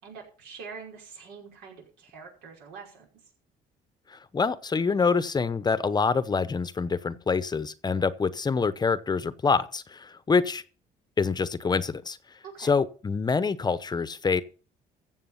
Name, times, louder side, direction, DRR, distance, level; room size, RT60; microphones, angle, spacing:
voice 1, 0.0-3.1 12.4-12.7, right 5 dB, 90° right, 5.3 m, -44 dB
voice 2, 4.1-10.6 11.2-12.2 12.6-14.4, left 5 dB, 25° left, 0.8 m, -26 dB
15.0 x 7.3 x 5.7 m
cardioid pair, 110°, 17 cm